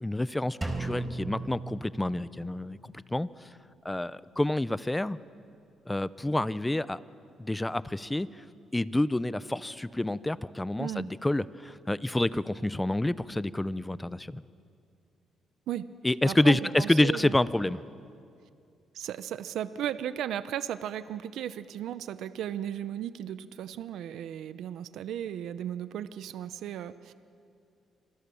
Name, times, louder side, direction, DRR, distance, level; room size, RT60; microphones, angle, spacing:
voice 1, 0.0-2.8 3.1-3.5 3.8-5.2 5.9-7.0 7.4-8.4 8.7-14.4 16.0-17.8, left 1 dB, 10° left, 16 dB, 0.7 m, -28 dB
Drum, 0.6-2.5, right 2 dB, 15° right, 4.3 m, -36 dB
voice 2, 16.2-17.3 18.9-27.1, right 10 dB, 80° right, 13 dB, 0.8 m, -35 dB
27.5 x 25.0 x 7.1 m, 2.4 s
cardioid pair, 90°, 0 cm